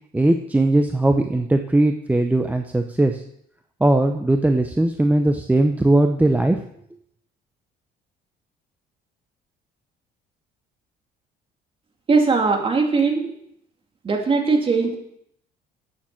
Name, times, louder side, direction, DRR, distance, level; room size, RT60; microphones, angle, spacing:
voice 1, 0.1-3.2 3.8-6.6, right 2 dB, 10° right, 5 dB, 0.7 m, -19 dB
voice 2, 12.1-13.3 14.0-15.0, right 4 dB, 30° right, 3 dB, 2.4 m, -19 dB
8.7 x 7.3 x 7.5 m, 0.71 s
cardioid pair, 110°, 17 cm